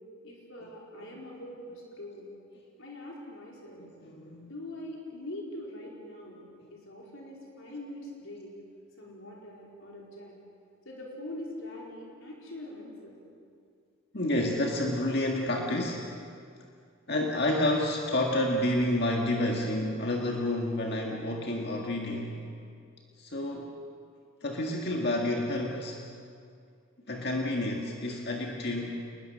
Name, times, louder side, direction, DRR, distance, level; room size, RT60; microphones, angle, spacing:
voice 1, 0.2-2.3 2.8-3.8 4.4-6.4 6.7-8.5 9.0-10.3 10.8-13.2, left 1 dB, 70° left, -2 dB, 4.6 m, -43 dB
voice 2, 3.8-4.5 14.1-16.1 17.1-22.4 23.2-23.7 24.4-26.1 27.1-29.0, left 1 dB, 50° left, 0 dB, 1.9 m, -29 dB
28.5 x 20.5 x 6.7 m, 2.3 s
head